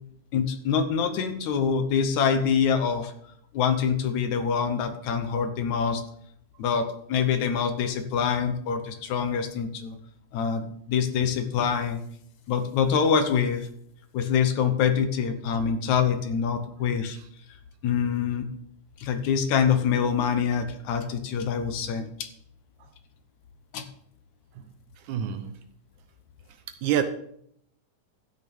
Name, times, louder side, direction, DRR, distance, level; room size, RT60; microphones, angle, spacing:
voice 1, 0.3-3.1 3.5-6.0 6.6-10.0 10.3-12.0 12.5-13.7 14.1-17.2 17.8-18.5 19.0-22.3 23.7-23.9, left 7 dB, 70° left, 2.2 m, -25 dB
voice 2, 25.1-25.6 26.8-27.0, right 10 dB, 75° right, 2.2 m, -27 dB
13.5 x 9.1 x 3.6 m
omnidirectional pair, 3.6 m